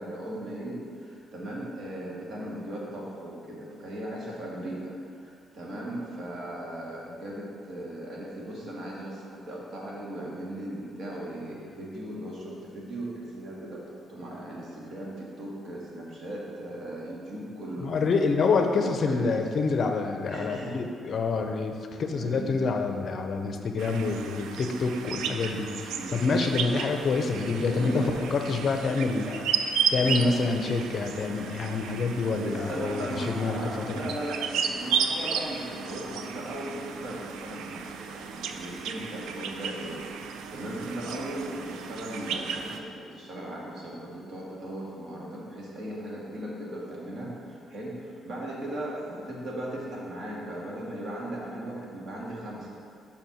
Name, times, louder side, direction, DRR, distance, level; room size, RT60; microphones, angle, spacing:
voice 1, 0.0-5.0 5.2-13.8 14.1-18.1 19.0-19.4 20.3-20.8 22.2-22.6 25.9-26.4 27.5-28.2 30.0-30.3 32.3-52.8, right 1 dB, 55° right, -4 dB, 1.8 m, -37 dB
voice 2, 17.8-28.1 28.3-29.5 29.9-34.0, left 4 dB, 50° left, 4 dB, 0.6 m, -27 dB
sound 1, 23.8-42.8, right 6 dB, 85° right, 0.4 m, -34 dB
5.7 x 4.4 x 6.2 m, 2.3 s
cardioid pair, 90°, 0 cm